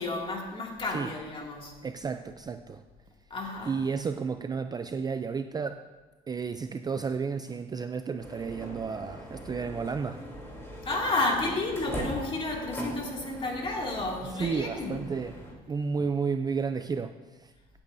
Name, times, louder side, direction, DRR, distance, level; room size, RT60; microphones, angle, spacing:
voice 1, 0.0-1.8 3.3-3.8 10.8-15.0, left 2 dB, 30° left, 2.3 m, -31 dB
voice 2, 1.8-2.8 3.7-5.8 6.3-10.2 14.4-15.3 15.7-17.5, right 5 dB, 25° right, 0.4 m, -32 dB
sound 1, 8.2-15.5, equal, 15° left, 3.3 m, -40 dB
16.5 x 8.7 x 2.6 m
cardioid pair, 110°, 17 cm